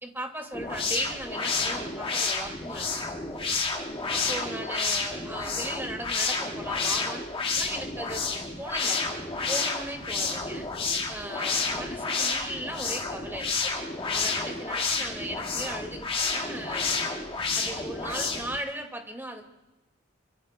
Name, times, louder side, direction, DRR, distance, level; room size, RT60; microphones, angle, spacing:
voice 1, 0.0-2.9 3.2-3.6 4.1-8.2 8.6-9.0 9.5-10.7 11.1-13.7 14.1-17.1 17.5-19.4, right 1 dB, 10° right, 4 dB, 2.0 m, -37 dB
sound 1, 0.5-18.6, left 4 dB, 30° left, 1.7 m, -30 dB
25.0 x 24.0 x 2.2 m, 1.0 s
head